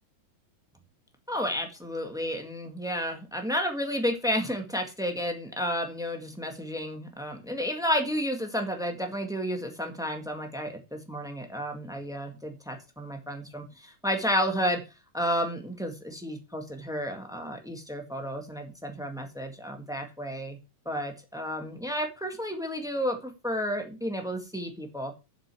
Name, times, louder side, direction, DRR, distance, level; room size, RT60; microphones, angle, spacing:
voice 1, 1.3-14.8 15.1-20.6 20.8-25.1, equal, ahead, 3 dB, 1.0 m, -31 dB
7.8 x 6.6 x 7.5 m, 0.29 s
omnidirectional pair, 3.5 m